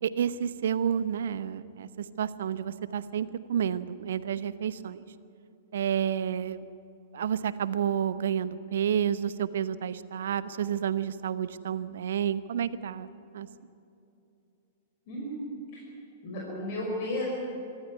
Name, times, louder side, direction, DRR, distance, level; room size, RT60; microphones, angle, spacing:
voice 1, 0.0-5.0 5.7-6.6 7.1-13.5, right 9 dB, 60° right, 16 dB, 0.8 m, -30 dB
voice 2, 15.1-15.8 16.2-17.3, left 1 dB, 45° left, -3 dB, 5.1 m, -34 dB
25.0 x 13.0 x 9.4 m, 2.8 s
figure-of-eight pair, 105°, 0 cm